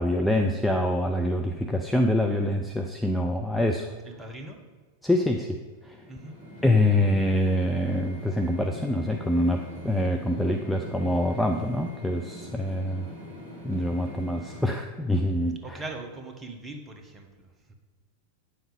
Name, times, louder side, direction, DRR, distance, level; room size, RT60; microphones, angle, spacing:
voice 1, 0.0-3.9 5.0-6.0 6.6-13.1 13.6-15.6, left 1 dB, ahead, 3 dB, 0.6 m, -25 dB
voice 2, 4.0-4.6 6.1-6.4 15.6-17.7, right 2 dB, 15° right, 4 dB, 1.4 m, -41 dB
sound 1, 5.7-14.7, equal, 65° left, 3.6 m, -42 dB
9.3 x 7.2 x 5.3 m, 1.4 s
figure-of-eight pair, 90°, 0 cm